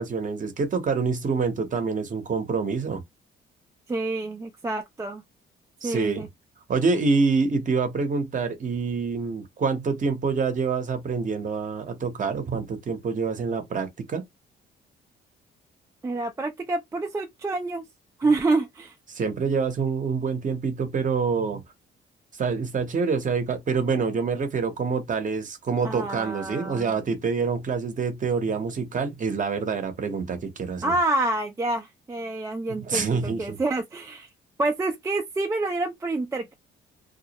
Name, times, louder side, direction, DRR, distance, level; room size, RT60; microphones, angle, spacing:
voice 1, 0.0-3.0 5.8-6.3 6.7-14.2 19.1-21.6 22.4-30.9 32.7-33.6, right 5 dB, 40° right, 0.7 m, -26 dB
voice 2, 3.9-5.2 5.8-6.3 16.0-17.8 18.2-18.9 25.8-27.0 30.8-34.3 34.6-36.5, right 2 dB, 15° right, 0.3 m, -27 dB
2.3 x 2.0 x 2.8 m
cardioid pair, 90°, 20 cm